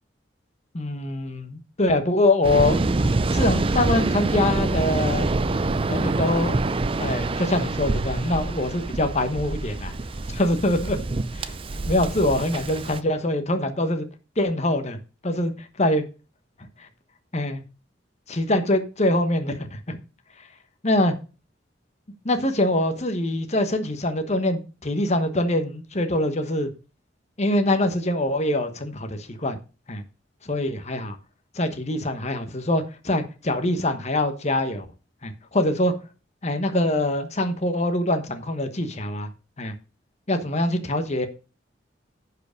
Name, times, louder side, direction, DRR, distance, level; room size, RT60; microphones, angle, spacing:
voice 1, 0.7-2.8 3.3-5.3 5.9-6.6 7.0-9.9 10.3-11.0 11.3-14.1 14.4-15.0 15.2-16.0 17.3-17.6 18.3-20.0 20.8-21.1 22.2-26.7 27.4-29.6 29.9-30.0 30.4-31.2 31.5-34.9 35.2-35.9 36.4-39.3 39.6-39.7 40.3-41.3, left 1 dB, 35° left, 1.2 m, -24 dB
Waves surf, 2.4-13.0, right 2 dB, 30° right, 0.5 m, -26 dB
10.0 x 4.9 x 6.4 m
head